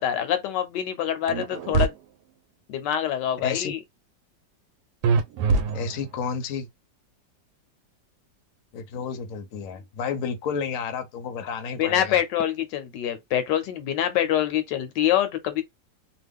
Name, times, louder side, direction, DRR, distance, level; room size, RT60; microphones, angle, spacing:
voice 1, 0.0-1.9 2.7-3.8 11.8-15.6, left 10 dB, 75° left, 1.2 m, -25 dB
sound 1, 1.3-1.9 5.0-6.2, right 4 dB, 75° right, 1.1 m, -23 dB
voice 2, 3.4-3.7 5.7-6.7 8.7-12.2, left 6 dB, 60° left, 0.9 m, -31 dB
3.0 x 2.2 x 3.5 m
omnidirectional pair, 2.0 m